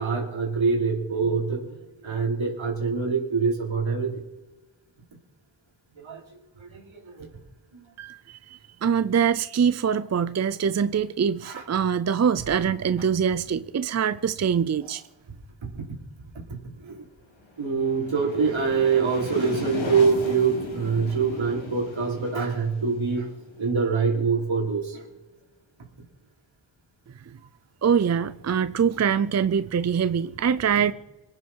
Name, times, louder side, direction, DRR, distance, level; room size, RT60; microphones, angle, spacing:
voice 1, 0.0-4.2 6.0-6.2 6.6-7.3 7.7-7.8 11.4-11.6 15.6-15.8 16.3-17.1 17.6-23.3 23.6-25.0, right 5 dB, 80° right, 4.7 m, -25 dB
voice 2, 8.0-15.0 27.3-27.4 27.8-30.9, right 7 dB, 35° right, 0.5 m, -24 dB
sound 1, 17.4-24.1, left 2 dB, 75° left, 3.1 m, -37 dB
26.0 x 9.8 x 4.7 m
wide cardioid pair, 125°, 46 cm